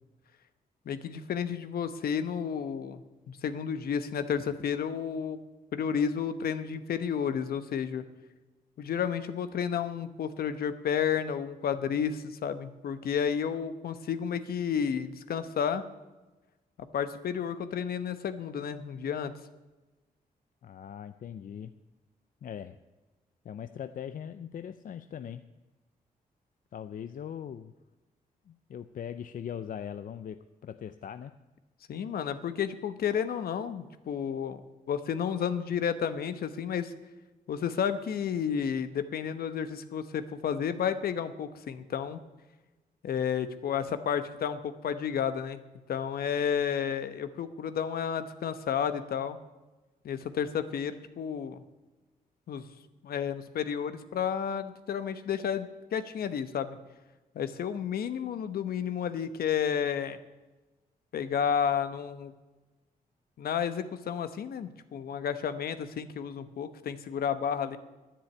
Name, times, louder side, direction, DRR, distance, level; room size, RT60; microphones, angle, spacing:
voice 1, 0.9-3.0 3.3-5.4 5.7-8.0 8.8-15.9 16.9-19.3 31.9-34.6 34.9-36.9 37.5-42.2 43.0-45.6 45.9-49.4 50.0-51.6 52.5-52.6 53.0-56.8 57.3-60.2 61.1-62.3 63.4-67.8, left 7 dB, 75° left, 11 dB, 1.0 m, -31 dB
voice 2, 20.6-21.7 22.4-22.8 23.4-25.4 26.7-27.7 28.5-31.3, left 8 dB, 60° left, 11 dB, 0.5 m, -40 dB
10.0 x 10.0 x 8.7 m, 1.1 s
cardioid pair, 80°, 16 cm